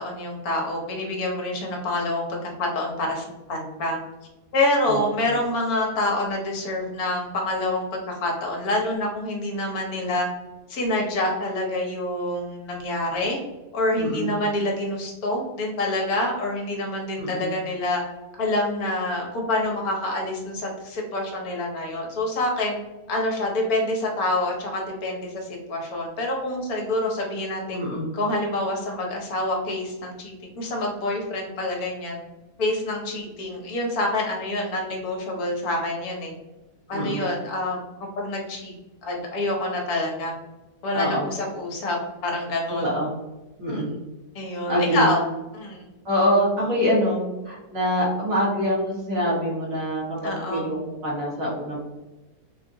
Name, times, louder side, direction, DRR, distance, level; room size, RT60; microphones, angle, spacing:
voice 1, 0.0-4.0 4.5-10.3 10.7-13.4 13.7-18.0 18.4-22.8 23.1-27.8 28.1-32.2 32.6-36.3 36.9-38.7 39.0-40.3 40.8-42.0 42.2-42.8 43.7-43.9 44.3-45.2 45.5-45.8 50.2-50.7, left 1 dB, 70° left, -1 dB, 1.2 m, -27 dB
voice 2, 14.0-14.3 17.2-17.5 27.7-28.1 36.9-37.2 40.9-41.3 42.7-43.1 43.6-43.9 44.7-45.1 46.0-51.8, equal, 55° right, -5 dB, 1.5 m, -25 dB
3.7 x 2.4 x 2.6 m, 1.1 s
omnidirectional pair, 1.7 m